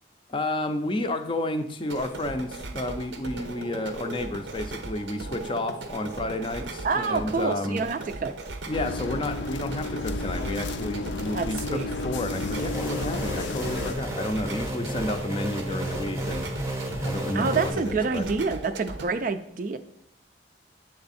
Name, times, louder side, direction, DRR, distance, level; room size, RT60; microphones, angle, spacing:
voice 1, 0.3-7.8 8.7-16.4 17.0-18.3, left 1 dB, 30° left, 7 dB, 0.5 m, -31 dB
sound 1, 1.8-19.1, right 2 dB, 85° right, 0.7 m, -38 dB
voice 2, 6.8-8.3 11.3-11.9 17.3-19.8, right 4 dB, 50° right, 9 dB, 0.4 m, -27 dB
sound 2, 8.7-13.9, left 3 dB, 85° left, 0.5 m, -32 dB
sound 3, 12.6-17.7, right 1 dB, 15° right, 0.7 m, -32 dB
7.7 x 3.5 x 4.1 m, 0.75 s
head